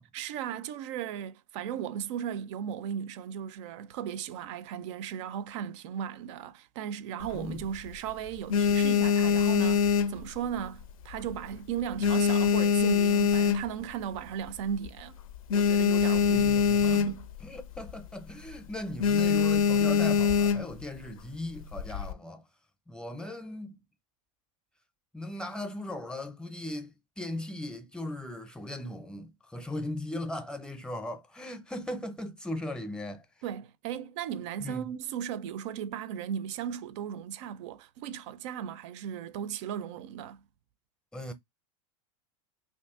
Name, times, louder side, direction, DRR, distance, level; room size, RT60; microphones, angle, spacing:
voice 1, 0.1-15.2 15.5-16.5 16.8-17.3 33.4-40.4, right 9 dB, 60° right, 0.4 m, -36 dB
sound 1, 7.2-7.9 8.3-10.8 11.1-11.5 11.8-14.0 14.5-14.6 14.8-14.9 15.2-17.4 17.7-18.0 18.3-18.6 19.0-20.8 21.6-22.1, left 6 dB, 85° left, 0.5 m, -24 dB
voice 2, 16.2-17.1 17.4-22.4 22.9-23.8 25.1-33.2 34.6-34.8 41.1-41.3, left 1 dB, 5° left, 0.6 m, -38 dB
2.7 x 2.6 x 3.5 m
hypercardioid pair, 115°, 18 cm